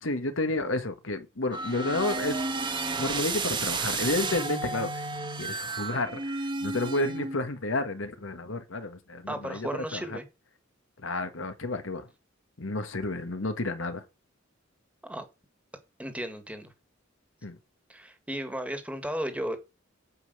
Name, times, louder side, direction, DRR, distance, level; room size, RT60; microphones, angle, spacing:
voice 1, 0.0-5.1 5.4-10.2 11.0-12.1 12.6-14.0 17.4-17.6, left 2 dB, 70° left, 1.5 m, -31 dB
sound 1, 1.5-7.5, right 3 dB, 25° right, 1.3 m, -32 dB
voice 2, 9.3-10.2 15.0-15.3 16.0-16.7 17.9-19.6, equal, 5° right, 1.7 m, -34 dB
9.2 x 5.4 x 7.9 m
head